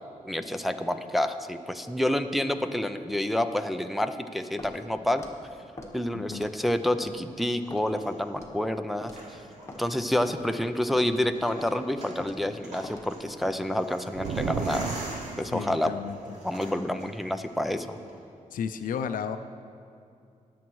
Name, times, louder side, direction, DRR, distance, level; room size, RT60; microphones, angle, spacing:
voice 1, 0.2-5.2 5.9-9.1 9.8-14.9 15.4-15.9 16.4-18.0, left 1 dB, ahead, 7 dB, 0.4 m, -28 dB
Walk footsteps, 4.6-4.8 5.2-5.4 5.8-5.9 6.3-6.6 7.0-7.2 7.7-7.8 8.4-8.6 9.0-9.2 9.7-9.8 10.3-10.5 11.0-11.2 11.6-11.7 12.2-12.4 12.8-13.1 13.4-13.6, left 2 dB, 20° left, 1.3 m, -43 dB
voice 2, 6.1-6.5 15.5-16.2 18.5-19.4, left 7 dB, 80° left, 10 dB, 0.5 m, -33 dB
sound 1, 7.3-18.2, right 1 dB, 55° right, 2.6 m, -45 dB
sound 2, 14.1-15.8, right 6 dB, 70° right, 0.5 m, -33 dB
20.0 x 7.3 x 3.1 m, 2.5 s
cardioid pair, 105°, 14 cm